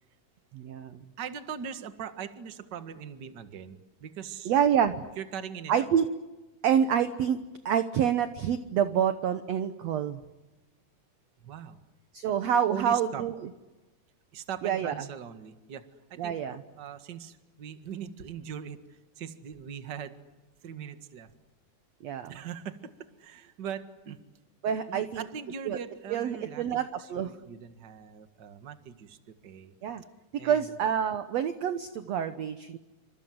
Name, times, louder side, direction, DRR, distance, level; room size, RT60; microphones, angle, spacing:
voice 1, 0.5-1.0 4.5-5.0 5.7-6.1 6.6-7.4 7.7-10.2 12.1-13.3 14.6-14.9 16.2-16.6 22.0-22.4 24.6-25.1 25.7-25.8 26.1-27.3 29.8-30.0 30.3-32.8, right 8 dB, 65° right, 10 dB, 1.8 m, -27 dB
voice 2, 1.2-4.5 5.2-5.9 11.4-11.8 12.7-13.2 14.3-20.2 20.6-21.3 22.3-22.8 23.2-24.2 24.6-29.7 30.4-30.7, right 8 dB, 40° right, 9 dB, 1.7 m, -41 dB
28.5 x 26.0 x 7.9 m, 1.1 s
omnidirectional pair, 4.0 m